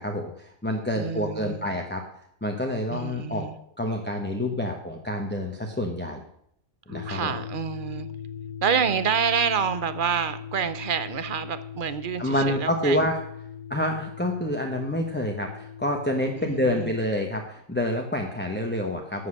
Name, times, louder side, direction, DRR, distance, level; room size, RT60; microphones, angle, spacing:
voice 1, 0.0-2.0 2.4-3.4 3.8-6.2 6.9-7.3 12.2-13.2 13.7-19.3, left 1 dB, 10° left, 1 dB, 1.0 m, -27 dB
voice 2, 1.0-1.7 2.9-3.6 6.9-8.1 8.6-13.0 16.4-16.9, right 7 dB, 60° right, 13 dB, 0.5 m, -28 dB
sound 1, 6.9-17.2, left 7 dB, 85° left, 1.4 m, -40 dB
12.0 x 7.9 x 6.5 m, 0.69 s
omnidirectional pair, 1.7 m